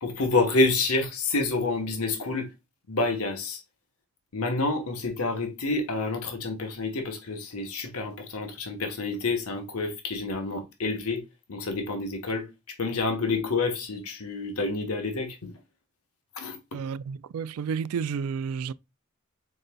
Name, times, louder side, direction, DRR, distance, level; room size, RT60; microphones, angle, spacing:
voice 1, 0.0-2.5 2.9-3.6 4.3-11.2 11.5-15.5 16.4-16.6, left 3 dB, 90° left, 1.1 m, -28 dB
voice 2, 16.7-18.7, right 6 dB, 85° right, 0.3 m, -31 dB
5.3 x 3.9 x 2.2 m
head